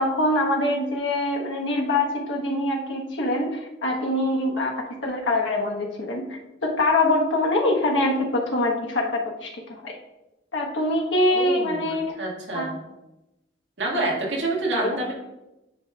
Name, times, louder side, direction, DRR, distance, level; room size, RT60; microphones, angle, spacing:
voice 1, 0.0-10.0 10.5-12.2 12.5-12.7 13.9-14.1 14.7-15.0, left 1 dB, 85° left, 0 dB, 1.3 m, -24 dB
voice 2, 11.3-12.7 13.8-15.1, right 2 dB, 70° right, -3 dB, 1.9 m, -28 dB
10.5 x 5.1 x 2.4 m, 0.96 s
head